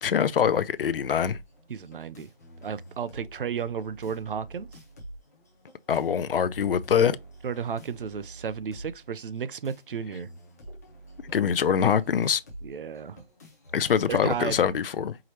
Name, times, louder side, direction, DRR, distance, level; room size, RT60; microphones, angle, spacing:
voice 1, 0.0-1.4 5.9-7.2 11.3-12.4 13.7-15.2, left 7 dB, 65° left, 0.5 m, -24 dB
sound 1, 0.8-14.8, right 1 dB, 15° left, 0.7 m, -47 dB
voice 2, 1.7-2.3 2.6-4.7 7.4-10.3 12.6-13.2 14.1-14.6, right 7 dB, 65° right, 0.5 m, -33 dB
4.8 x 3.0 x 2.8 m
figure-of-eight pair, 165°, 30 cm